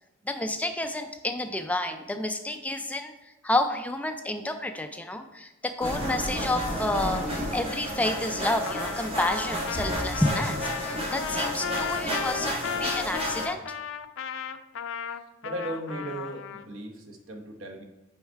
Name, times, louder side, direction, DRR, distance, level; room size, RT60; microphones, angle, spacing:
voice 1, 0.3-3.1 3.4-13.7, left 1 dB, 5° left, 7 dB, 0.3 m, -30 dB
sound 1, 5.8-13.5, equal, 30° right, 1.5 m, -31 dB
Trumpet, 8.6-16.7, left 7 dB, 70° left, 0.4 m, -35 dB
voice 2, 15.4-17.8, right 1 dB, 75° right, 4 dB, 1.0 m, -36 dB
5.5 x 5.5 x 4.5 m, 0.95 s
head